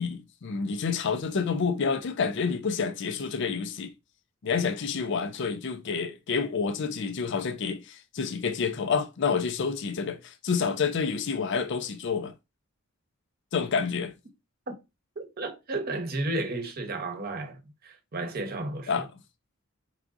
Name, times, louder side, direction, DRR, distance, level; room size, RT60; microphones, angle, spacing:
voice 1, 0.0-3.9 4.4-12.3 13.5-14.1 18.9-19.1, left 5 dB, 60° left, 0.4 m, -28 dB
voice 2, 15.2-19.1, right 2 dB, 45° right, 0.9 m, -33 dB
4.7 x 3.6 x 2.5 m
head